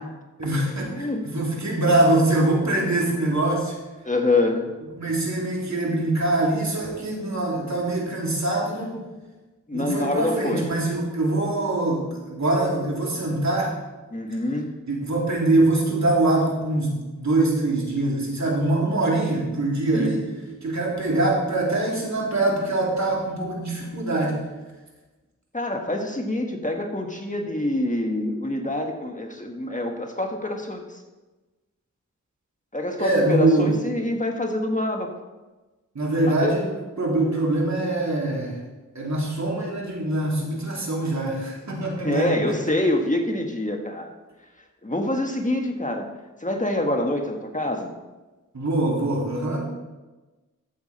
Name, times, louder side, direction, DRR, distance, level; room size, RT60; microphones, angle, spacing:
voice 1, 0.4-3.8 5.0-9.1 9.7-13.8 14.9-20.3 20.6-24.4 33.0-33.7 35.9-38.6 38.9-42.6 48.5-49.7, right 2 dB, 60° right, -3 dB, 3.1 m, -23 dB
voice 2, 4.0-4.6 9.7-10.6 14.1-14.7 19.9-20.1 25.5-30.8 32.7-35.1 36.4-36.5 42.0-44.1 44.8-46.0 46.4-47.9, left 1 dB, 25° left, 2 dB, 1.6 m, -25 dB
14.5 x 7.1 x 4.3 m, 1.2 s
cardioid pair, 50°, 32 cm